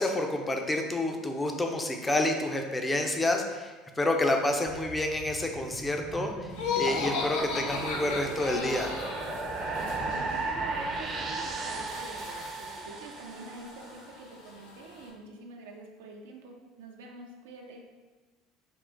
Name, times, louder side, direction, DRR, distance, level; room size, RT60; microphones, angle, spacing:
voice 1, 0.0-6.5 6.8-8.9, left 1 dB, 15° left, 3 dB, 0.5 m, -29 dB
sound 1, 4.7-14.0, right 3 dB, 40° right, 0.6 m, -36 dB
sound 2, 6.5-15.1, left 1 dB, 90° left, 1.1 m, -49 dB
Laughter, 6.5-9.4, left 5 dB, 75° left, 0.6 m, -32 dB
voice 2, 9.9-17.9, right 3 dB, 80° right, 1 dB, 0.5 m, -46 dB
3.7 x 2.4 x 3.8 m, 1.3 s
hypercardioid pair, 80°, 0 cm